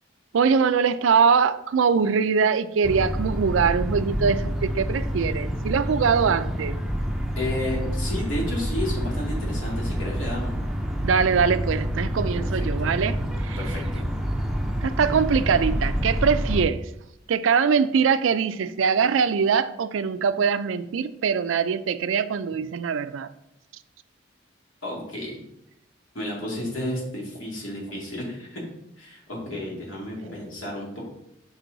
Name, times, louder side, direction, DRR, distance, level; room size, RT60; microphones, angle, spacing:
voice 1, 0.3-6.8 11.0-13.2 13.4-13.6 14.8-16.8 17.3-23.3, right 6 dB, 80° right, 0.4 m, -22 dB
sound 1, 2.8-16.6, equal, 5° right, 0.5 m, -27 dB
voice 2, 7.4-10.5 12.4-12.9 13.6-14.1 24.8-25.4 26.1-28.6 29.0-31.0, left 1 dB, 90° left, 2.4 m, -32 dB
6.0 x 5.5 x 3.9 m
head